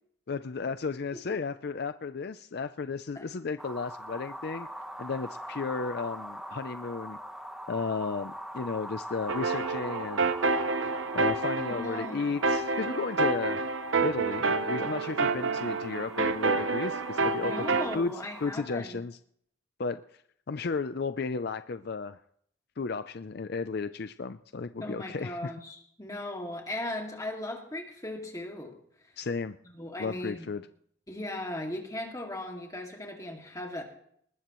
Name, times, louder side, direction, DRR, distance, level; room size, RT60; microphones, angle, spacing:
voice 1, 0.3-4.7 5.0-7.2 7.7-10.6 11.1-13.7 14.0-18.1 18.4-19.2 19.8-20.0 20.5-22.2 22.8-25.5 29.2-29.6 30.0-30.7, left 4 dB, 55° left, 11 dB, 0.5 m, -34 dB
sound 1, 3.6-18.6, equal, ahead, 1.0 m, -43 dB
sound 2, 9.3-18.0, right 3 dB, 90° right, 0.9 m, -29 dB
voice 2, 11.7-12.3 17.4-19.0 24.8-28.7 29.7-30.5 31.1-33.8, left 1 dB, 20° left, 1 dB, 2.2 m, -37 dB
20.0 x 20.0 x 3.1 m, 0.67 s
head